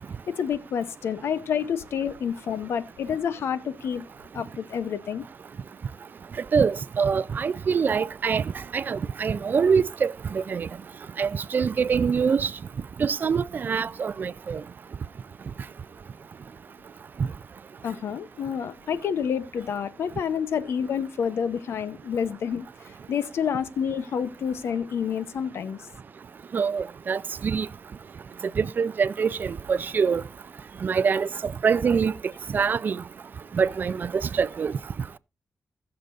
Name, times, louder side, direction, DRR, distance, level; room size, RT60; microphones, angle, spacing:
voice 1, 0.4-4.0 4.3-5.3 17.8-25.8, left 7 dB, 80° left, 0.7 m, -29 dB
voice 2, 6.5-8.4 8.7-10.7 11.2-12.5 13.0-14.6 26.5-27.7 28.6-30.2 30.8-32.1 32.5-33.0 33.6-34.7, right 6 dB, 50° right, 0.4 m, -24 dB
20.0 x 6.7 x 2.5 m
cardioid pair, 95°, 4 cm